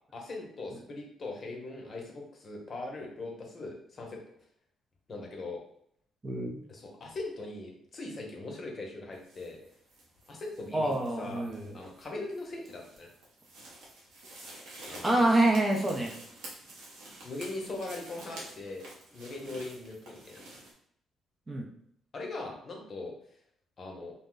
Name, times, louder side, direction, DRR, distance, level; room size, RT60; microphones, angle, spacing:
voice 1, 0.1-4.2 5.1-5.6 6.7-9.6 10.3-11.4 11.7-13.1 14.8-15.3 17.2-18.8 19.1-20.4 22.1-23.1 23.8-24.1, left 2 dB, 45° left, 0 dB, 0.8 m, -40 dB
voice 2, 6.2-6.6 10.7-11.7 15.0-16.1 21.5-21.7, right 1 dB, 30° right, 0 dB, 0.6 m, -26 dB
sound 1, 9.1-20.7, right 2 dB, 90° right, 0.9 m, -50 dB
2.6 x 2.1 x 3.8 m, 0.69 s
cardioid pair, 90°, 0 cm